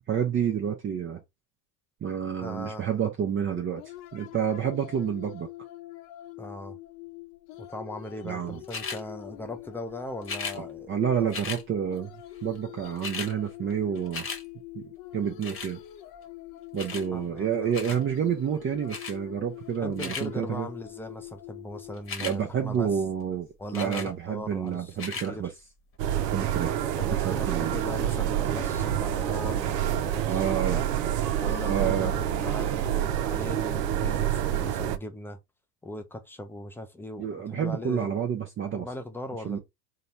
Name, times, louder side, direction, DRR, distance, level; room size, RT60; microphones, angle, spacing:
voice 1, 0.1-1.2 2.0-3.8 4.1-5.5 8.2-8.6 10.6-12.1 12.4-14.3 14.7-15.8 16.7-20.7 22.2-25.5 26.3-26.8 27.1-27.7 30.3-30.8 31.7-32.1 37.2-38.9 39.4-39.6, right 8 dB, 25° right, 0.7 m, -29 dB
voice 2, 2.4-2.8 6.4-6.8 7.6-10.9 11.2-11.4 16.9-18.0 19.8-22.9 23.6-25.0 25.3-25.5 27.0-30.9 31.4-35.4 35.8-38.2 38.7-39.6, left 1 dB, 5° left, 0.3 m, -39 dB
sound 1, 3.6-23.1, left 16 dB, 55° left, 0.7 m, -45 dB
sound 2, 8.7-9.0 10.2-10.6 11.3-11.6 12.6-12.7 12.8-13.3 13.7-14.4 15.4-15.7 16.8-17.1 17.7-18.0 18.9-19.2 19.8-20.3 22.0-22.4 23.7-24.1 24.9-25.3 25.9-26.0, left 5 dB, 25° left, 1.1 m, -36 dB
sound 3, 26.0-35.0, right 11 dB, 70° right, 0.7 m, -27 dB
3.8 x 2.3 x 4.2 m
hypercardioid pair, 90°, 50 cm